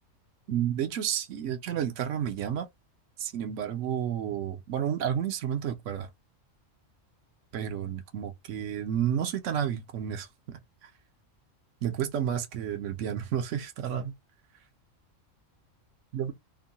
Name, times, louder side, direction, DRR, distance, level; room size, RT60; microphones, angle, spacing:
voice 1, 0.5-2.7 3.2-6.1 7.5-10.9 11.8-14.1 16.1-16.3, right 9 dB, 75° right, 1.0 m, -31 dB
2.9 x 2.2 x 2.7 m
omnidirectional pair, 1.3 m